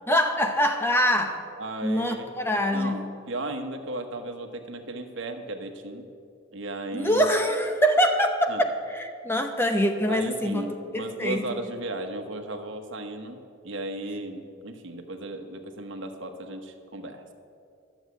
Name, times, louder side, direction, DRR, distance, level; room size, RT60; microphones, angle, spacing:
voice 1, 0.1-1.4 1.8-3.0 6.9-11.4, equal, 10° left, 5 dB, 0.8 m, -24 dB
voice 2, 1.6-2.3 2.7-6.0 6.5-7.3 8.5-8.6 10.1-13.4 13.6-17.3, right 2 dB, 70° right, 5 dB, 1.2 m, -35 dB
12.0 x 7.1 x 8.3 m, 2.4 s
head